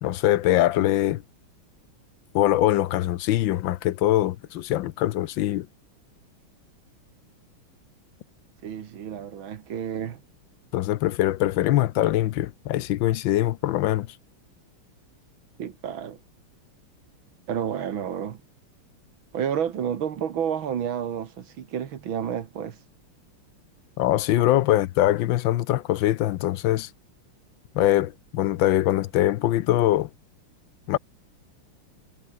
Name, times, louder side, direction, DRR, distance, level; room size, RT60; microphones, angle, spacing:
voice 1, 0.0-1.2 2.3-5.7 10.7-14.1 24.0-26.9 27.7-30.1 30.9-31.0, left 14 dB, 70° left, 1.3 m, -22 dB
voice 2, 8.6-10.2 15.6-16.2 17.5-18.4 19.3-22.8, right 8 dB, 65° right, 2.2 m, -30 dB
omnidirectional pair, 2.4 m